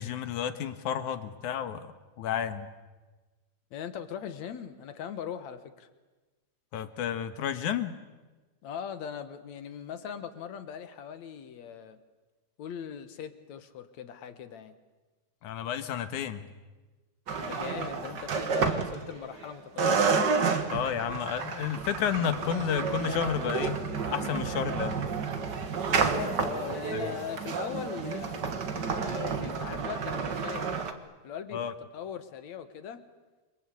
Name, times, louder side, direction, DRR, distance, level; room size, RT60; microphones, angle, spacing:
voice 1, 0.0-1.9 2.2-2.7 6.7-8.0 15.4-16.5 20.7-23.8 24.1-25.1 26.9-27.1 31.5-31.7, left 9 dB, 90° left, 10 dB, 2.8 m, -31 dB
voice 2, 3.7-5.9 8.6-12.0 12.6-14.7 17.3-20.1 25.9-28.4 28.7-30.8 31.2-33.0, left 8 dB, 70° left, 10 dB, 2.7 m, -40 dB
sound 1, 17.3-19.4 19.8-30.9, right 5 dB, 45° right, 1.8 m, -30 dB
28.5 x 23.0 x 8.4 m, 1.2 s
omnidirectional pair, 3.4 m